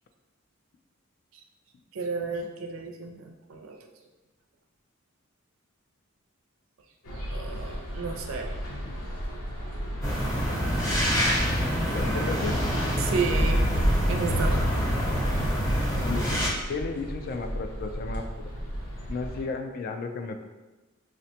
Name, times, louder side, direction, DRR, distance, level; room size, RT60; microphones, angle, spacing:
voice 1, 1.9-3.8 7.3-8.6 11.1-11.3 13.0-13.6 14.1-14.7, right 4 dB, 70° right, 4 dB, 0.4 m, -32 dB
sound 1, 7.0-19.4, equal, 85° left, 0.7 m, -35 dB
sound 2, 10.0-16.5, equal, 15° left, 0.8 m, -25 dB
voice 2, 11.9-12.6 16.0-18.3 19.1-20.4, left 4 dB, 45° left, 5 dB, 0.3 m, -33 dB
4.9 x 2.1 x 2.8 m, 1.2 s
head